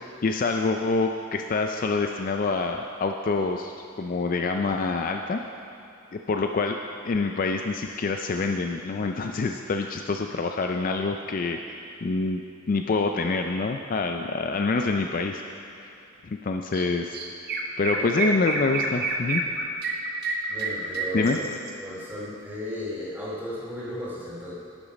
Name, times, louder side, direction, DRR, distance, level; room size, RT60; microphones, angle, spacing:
voice 1, 0.0-5.4 6.1-6.8 7.0-12.4 12.7-15.4 15.8-16.0 16.2-17.2 17.8-19.4 21.1-21.4, left 3 dB, 40° left, 4 dB, 0.3 m, -26 dB
Chirp tweet, 16.7-16.9 17.1-21.7, right 3 dB, 45° right, 0.9 m, -29 dB
voice 2, 18.0-18.3 20.5-21.4 21.7-24.5, left 1 dB, 10° right, -7 dB, 2.6 m, -34 dB
11.5 x 7.0 x 5.1 m, 2.7 s
head